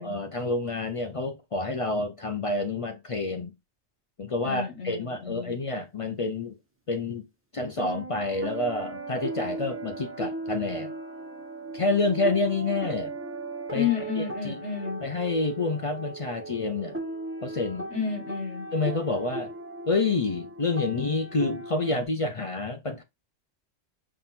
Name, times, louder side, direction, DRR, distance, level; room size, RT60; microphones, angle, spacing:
voice 1, 0.0-3.5 4.2-6.5 6.9-7.2 7.5-10.9 11.7-13.1 13.7-13.9 14.2-14.6 15.0-17.0 17.4-17.9 18.7-19.5 19.9-23.0, left 3 dB, 45° left, 0.4 m, -28 dB
voice 2, 4.4-5.6 13.7-15.0 17.9-18.7, left 7 dB, 75° left, 1.8 m, -31 dB
sound 1, 7.7-22.1, right 2 dB, 10° right, 1.0 m, -37 dB
5.7 x 3.7 x 2.4 m
omnidirectional pair, 1.2 m